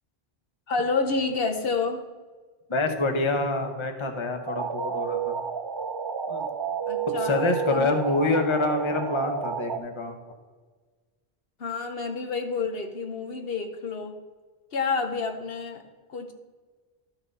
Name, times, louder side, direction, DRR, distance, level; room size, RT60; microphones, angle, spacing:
voice 1, 0.7-2.0 6.9-8.0 11.6-14.2 14.7-15.8 16.1-16.3, left 4 dB, 70° left, 4 dB, 1.0 m, -29 dB
voice 2, 2.7-5.4 6.3-6.5 7.2-10.2, left 2 dB, 30° left, 4 dB, 0.9 m, -26 dB
sound 1, 4.5-9.8, right 6 dB, 35° right, 0.4 m, -31 dB
12.5 x 5.8 x 4.1 m, 1.4 s
omnidirectional pair, 1.0 m